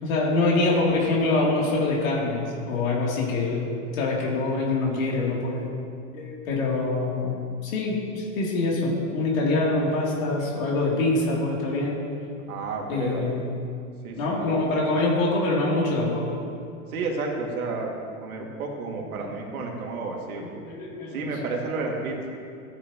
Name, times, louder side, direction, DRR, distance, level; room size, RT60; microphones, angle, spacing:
voice 1, 0.0-5.7 6.1-7.3 7.6-12.0 12.9-13.4 14.2-16.4 20.4-21.3, left 2 dB, 70° left, -4 dB, 3.1 m, -25 dB
voice 2, 12.5-13.3 14.0-14.6 16.9-17.9 18.2-20.4 21.1-22.2, right 3 dB, 80° right, 0 dB, 2.4 m, -31 dB
15.0 x 9.8 x 3.0 m, 2.4 s
hypercardioid pair, 120°, 43 cm